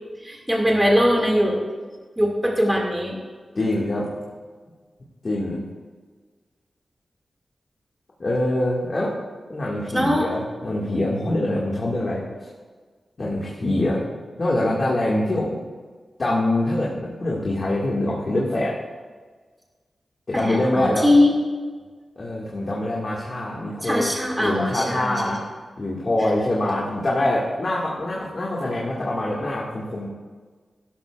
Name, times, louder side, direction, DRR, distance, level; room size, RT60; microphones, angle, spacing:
voice 1, 0.2-1.6 2.2-3.2 9.9-10.3 20.3-21.3 23.8-25.4, left 1 dB, 10° right, -1 dB, 2.2 m, -21 dB
voice 2, 3.6-4.1 5.2-5.6 8.2-9.1 9.5-12.5 13.2-14.0 14.4-15.6 16.2-18.8 20.3-21.1 22.2-24.1 24.4-25.4 25.8-30.1, left 1 dB, 40° left, -5 dB, 1.9 m, -24 dB
16.5 x 12.5 x 2.4 m, 1.5 s
wide cardioid pair, 145°, 0 cm